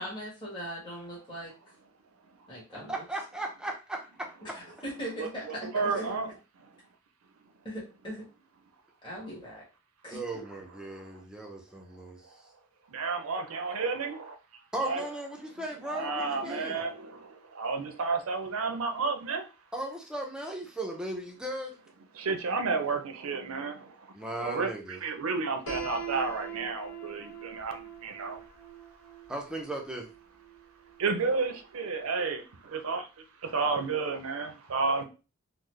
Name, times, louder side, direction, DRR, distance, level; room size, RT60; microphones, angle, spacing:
voice 1, 0.0-1.5 2.5-2.9 4.4-5.4 5.9-6.1 7.6-8.2 9.0-9.6 10.0-10.4, equal, 20° left, -6 dB, 1.2 m, -39 dB
voice 2, 2.9-4.3 10.1-12.2 14.7-16.8 19.7-21.8 24.1-25.0 29.3-30.1, right 1 dB, 5° right, 1 dB, 0.5 m, -37 dB
voice 3, 5.2-6.3 12.9-14.3 14.8-15.1 15.8-17.3 17.5-19.4 22.2-23.8 24.4-28.4 31.0-33.0 33.5-35.0, right 4 dB, 75° right, 6 dB, 0.5 m, -31 dB
Piano, 25.7-31.5, right 5 dB, 65° left, 1.1 m, -43 dB
3.8 x 2.0 x 3.1 m, 0.32 s
head